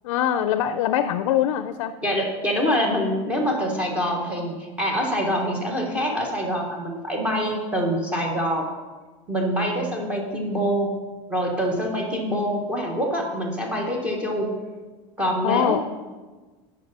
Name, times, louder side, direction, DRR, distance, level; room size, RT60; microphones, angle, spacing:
voice 1, 0.0-1.9 15.4-15.8, left 10 dB, 90° left, 11 dB, 0.4 m, -23 dB
voice 2, 2.0-8.7 9.3-10.9 11.3-14.5 15.2-15.8, equal, 10° right, -2 dB, 1.2 m, -25 dB
9.4 x 5.5 x 4.1 m, 1.3 s
supercardioid pair, 160°, 16 cm